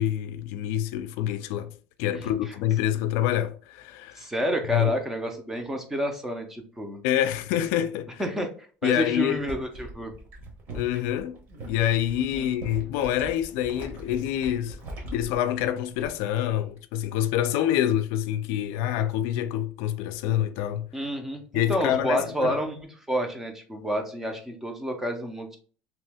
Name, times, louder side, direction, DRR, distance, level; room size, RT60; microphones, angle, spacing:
voice 1, 0.0-1.7 2.0-4.3 4.7-4.9 7.0-8.2 8.8-9.4 10.7-11.4 11.6-14.8 15.0-20.9 21.5-22.6, left 11 dB, 70° left, 0.3 m, -26 dB
voice 2, 4.2-7.0 8.2-8.5 8.8-10.1 12.4-12.5 20.9-25.6, equal, 5° right, 0.4 m, -29 dB
sound 1, 9.4-16.4 16.7-17.0, right 1 dB, 45° right, 1.0 m, -42 dB
2.9 x 2.7 x 3.3 m
cardioid pair, 175°, 5 cm